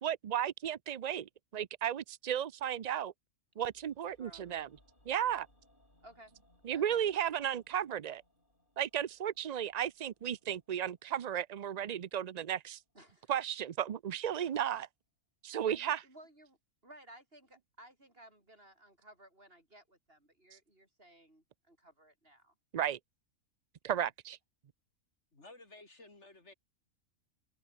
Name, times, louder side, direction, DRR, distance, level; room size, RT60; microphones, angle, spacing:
voice 1, 0.0-3.1 3.6-4.7 5.1-5.5 6.6-8.2 8.8-12.8 13.3-14.9 15.4-16.0 22.7-23.0 23.8-24.4, right 10 dB, 85° right, 0.3 m, -34 dB
sound 1, 3.5-13.7 13.9-14.0, left 1 dB, 35° left, 8.3 m, -71 dB
voice 2, 4.0-4.6 6.0-6.3 6.7-7.0 12.9-13.3 15.5-16.6 16.8-22.5, right 1 dB, 40° right, 8.4 m, -58 dB
voice 3, 25.3-26.5, left 2 dB, 55° left, 3.9 m, -54 dB
omnidirectional pair, 1.4 m